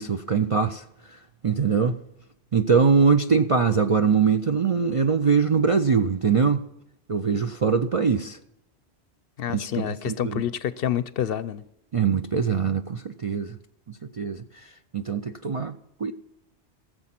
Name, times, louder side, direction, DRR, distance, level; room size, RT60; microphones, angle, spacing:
voice 1, 0.0-2.0 2.5-6.6 7.1-8.4 9.5-10.4 11.9-13.6 13.9-16.1, right 5 dB, 45° right, 0.4 m, -23 dB
voice 2, 9.4-11.6, left 10 dB, 60° left, 0.7 m, -28 dB
17.0 x 7.5 x 5.9 m
omnidirectional pair, 1.2 m